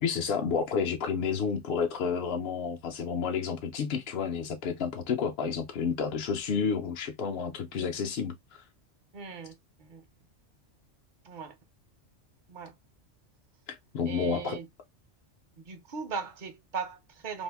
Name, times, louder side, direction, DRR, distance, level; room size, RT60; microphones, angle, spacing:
voice 1, 0.0-8.6 13.7-14.6, left 6 dB, 60° left, 0.7 m, -30 dB
voice 2, 9.1-9.5 9.8-10.0 11.2-11.6 12.5-12.7 14.1-14.7 15.7-17.4, right 5 dB, 50° right, 0.7 m, -38 dB
2.7 x 2.5 x 3.3 m
omnidirectional pair, 1.3 m